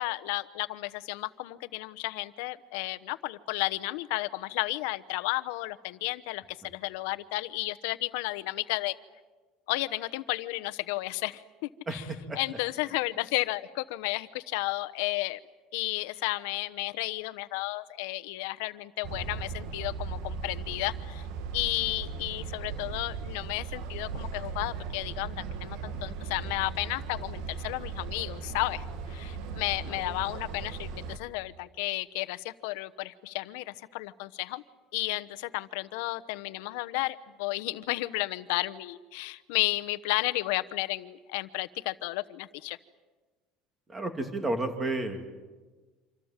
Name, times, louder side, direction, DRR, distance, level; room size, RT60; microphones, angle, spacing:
voice 1, 0.0-9.0 9.7-12.0 12.3-15.4 15.7-21.3 21.5-34.6 34.9-42.8, left 20 dB, 80° left, 11 dB, 1.0 m, -33 dB
voice 2, 11.9-12.4 29.8-30.0 43.9-45.3, right 2 dB, 15° right, 5 dB, 2.7 m, -32 dB
sound 1, 19.0-31.2, right 5 dB, 60° right, 1.8 m, -38 dB
27.0 x 26.5 x 7.5 m, 1.3 s
cardioid pair, 165°, 0 cm